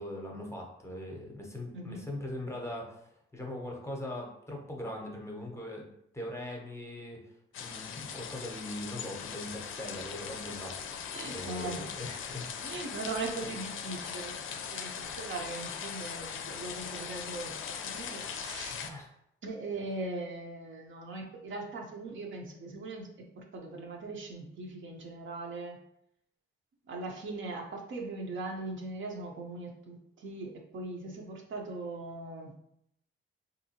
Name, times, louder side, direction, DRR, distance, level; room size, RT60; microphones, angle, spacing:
voice 1, 0.0-5.9 6.1-7.2 7.6-12.5 13.4-13.6 18.7-19.1, left 1 dB, 15° left, 0 dB, 0.7 m, -41 dB
voice 2, 1.7-2.1 11.1-11.8 12.6-17.6 17.8-18.8 19.4-23.1 23.4-25.8 26.9-32.6, right 2 dB, 65° right, 1 dB, 0.7 m, -40 dB
sound 1, 7.5-18.9, left 7 dB, 70° left, 0.4 m, -40 dB
3.5 x 2.7 x 2.8 m, 0.76 s
cardioid pair, 120°, 21 cm